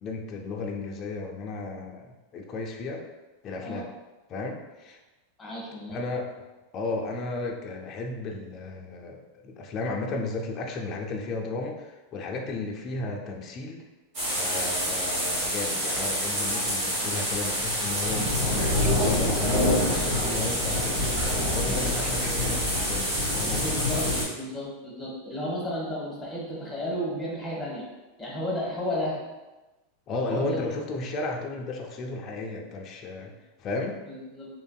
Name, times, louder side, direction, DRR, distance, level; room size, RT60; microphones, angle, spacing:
voice 1, 0.0-3.0 3.4-3.9 4.3-5.0 5.9-6.3 6.7-13.8 14.4-21.0 21.3-23.7 30.1-33.3 33.6-34.0, left 3 dB, 35° left, 1 dB, 0.4 m, -34 dB
voice 2, 5.4-6.0 23.5-27.8 28.2-29.2 30.2-30.8 34.1-34.5, left 1 dB, 10° left, -4 dB, 1.0 m, -33 dB
sound 1, 14.1-24.2, equal, 60° right, 1.4 m, -26 dB
3.0 x 2.5 x 2.2 m, 1.1 s
supercardioid pair, 130°, 0 cm